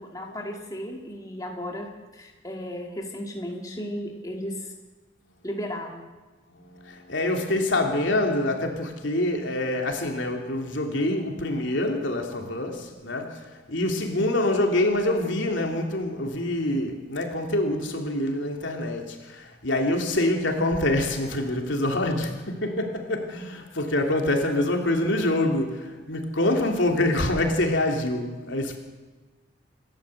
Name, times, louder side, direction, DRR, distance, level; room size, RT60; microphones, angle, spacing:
voice 1, 0.0-4.7 5.4-6.0, equal, 20° left, 2.2 m, -35 dB
voice 2, 6.9-13.4 13.7-28.8, left 1 dB, 70° left, 3.1 m, -25 dB
27.5 x 12.5 x 7.8 m
head